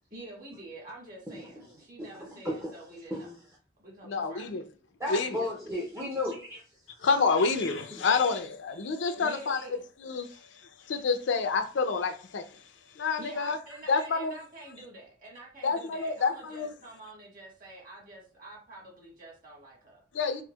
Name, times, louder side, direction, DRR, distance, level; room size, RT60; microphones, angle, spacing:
voice 1, 0.1-3.3 3.8-4.6 8.9-9.8 10.3-10.4 13.2-20.0, right 2 dB, 45° right, 1.4 m, -47 dB
voice 2, 2.0-2.7 3.1-3.4 5.0-6.6 7.9-8.0, left 1 dB, 15° right, 0.4 m, -34 dB
voice 3, 4.0-4.6 5.1-5.4 7.0-9.6 10.0-12.6 12.9-13.6 13.9-14.4 15.6-16.7 20.1-20.4, left 4 dB, 75° left, 0.5 m, -28 dB
4.4 x 2.0 x 2.2 m
head